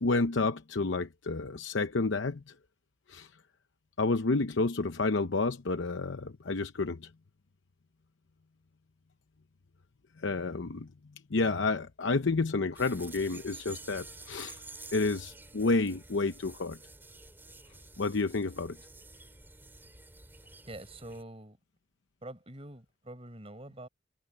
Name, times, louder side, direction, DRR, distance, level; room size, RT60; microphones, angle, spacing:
voice 1, 0.0-2.4 3.1-3.3 4.0-7.1 10.2-10.9 11.3-14.6 14.9-16.8 18.0-18.8, left 3 dB, 85° left, 0.8 m, -30 dB
sound 1, 12.8-21.2, right 2 dB, 10° right, 3.4 m, -50 dB
voice 2, 20.7-21.6 22.2-23.9, right 1 dB, 30° right, 5.3 m, -45 dB
head